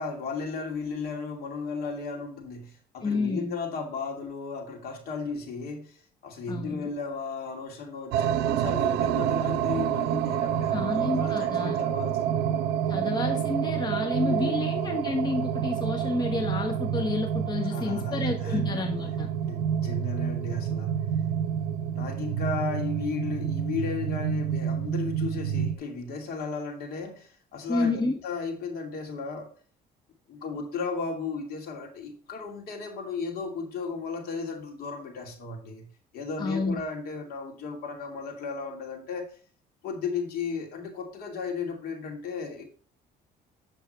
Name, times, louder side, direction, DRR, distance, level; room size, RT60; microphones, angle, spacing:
voice 1, 0.0-12.5 14.2-14.8 17.6-18.6 19.5-21.0 21.9-29.5 30.3-35.9 36.1-39.3 39.8-42.6, left 4 dB, 65° left, 2 dB, 2.6 m, -35 dB
voice 2, 3.0-3.5 6.5-6.9 10.7-11.8 12.9-19.3 27.7-28.2 36.4-36.8, left 2 dB, 25° left, 3 dB, 1.3 m, -29 dB
sound 1, 8.1-25.8, right 9 dB, 80° right, 0.6 m, -28 dB
8.2 x 6.8 x 3.2 m, 0.43 s
cardioid pair, 110°, 17 cm